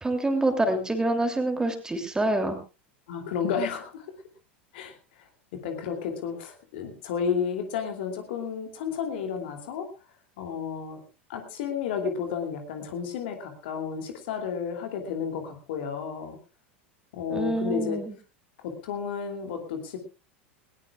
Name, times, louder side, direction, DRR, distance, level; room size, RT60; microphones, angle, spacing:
voice 1, 0.0-2.6 17.3-18.1, right 2 dB, 10° right, 6 dB, 2.9 m, -26 dB
voice 2, 3.1-4.1 4.7-5.0 5.5-9.9 10.4-11.0 11.3-16.4 17.1-18.0 18.6-20.0, left 7 dB, 60° left, 5 dB, 2.7 m, -32 dB
19.5 x 19.5 x 2.4 m, 0.31 s
figure-of-eight pair, 80°, 6 cm